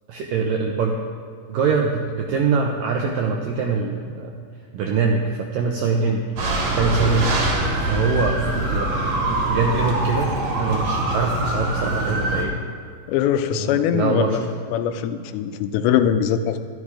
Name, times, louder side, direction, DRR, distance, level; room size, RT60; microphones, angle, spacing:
voice 1, 0.1-1.0 1.5-4.3 4.7-6.2 6.8-7.3 7.8-10.3 10.6-12.5 13.5-14.5, right 5 dB, 85° right, 1 dB, 2.0 m, -23 dB
sound 1, 6.4-12.4, right 1 dB, 50° right, 2.3 m, -23 dB
voice 2, 13.1-14.4 14.7-16.6, left 9 dB, 85° left, 10 dB, 2.9 m, -21 dB
13.0 x 11.5 x 4.9 m, 2.2 s
omnidirectional pair, 5.0 m